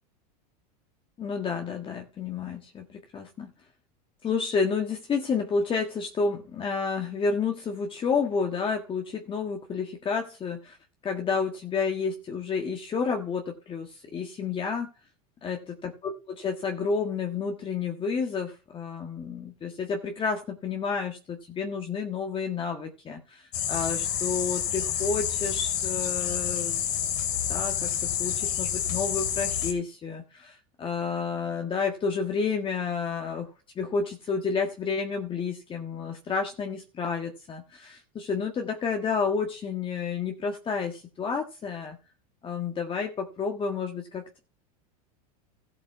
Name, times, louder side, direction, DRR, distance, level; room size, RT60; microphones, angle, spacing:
voice 1, 1.2-3.5 4.2-10.8 11.0-14.9 15.4-15.6 16.0-26.8 27.5-33.5 33.7-42.0 42.4-44.4, left 5 dB, 25° left, 3 dB, 1.5 m, -30 dB
sound 1, 23.5-29.7, left 9 dB, 70° left, 3.3 m, -29 dB
13.5 x 7.5 x 4.7 m, 0.34 s
supercardioid pair, 130°, 21 cm